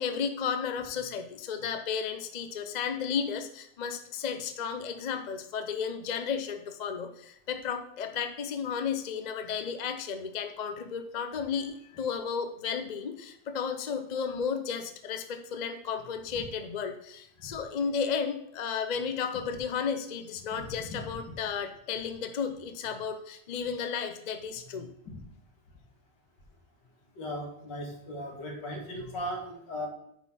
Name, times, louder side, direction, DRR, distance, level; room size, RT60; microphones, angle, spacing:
voice 1, 0.0-24.9, left 6 dB, 60° left, 7 dB, 0.4 m, -33 dB
voice 2, 20.5-21.2 25.1-25.2 27.2-29.9, equal, 85° left, 0 dB, 2.4 m, -38 dB
9.4 x 4.2 x 5.7 m, 0.72 s
omnidirectional pair, 1.8 m